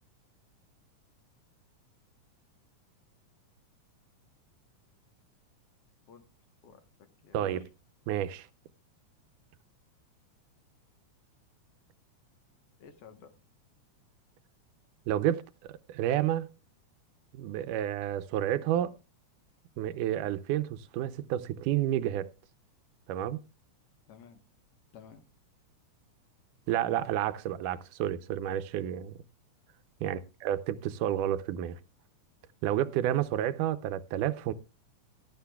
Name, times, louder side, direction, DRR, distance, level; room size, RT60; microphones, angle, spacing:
voice 1, 6.6-7.7 12.8-13.3 24.1-24.4 24.9-25.2 30.0-30.1, left 7 dB, 60° left, 2.0 m, -53 dB
voice 2, 7.3-7.7 8.1-8.5 15.1-16.5 17.3-18.9 19.8-22.3 23.1-23.4 26.7-29.2 30.0-31.8 32.6-34.5, right 12 dB, 90° right, 2.2 m, -30 dB
17.0 x 12.0 x 2.3 m
omnidirectional pair, 3.5 m